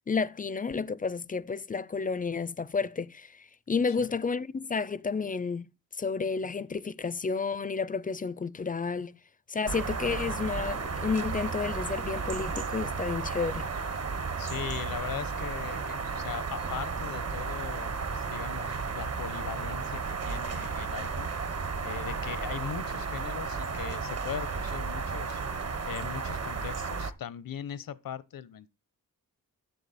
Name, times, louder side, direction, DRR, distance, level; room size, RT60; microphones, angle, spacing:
voice 1, 0.1-5.7 6.0-9.1 9.5-13.7, left 5 dB, 25° left, 0.4 m, -31 dB
sound 1, 9.7-27.1, right 5 dB, 45° right, 0.9 m, -33 dB
voice 2, 14.4-21.5 21.8-25.4 25.8-28.7, left 9 dB, 85° left, 0.9 m, -40 dB
10.5 x 7.3 x 4.2 m
wide cardioid pair, 140°, 34 cm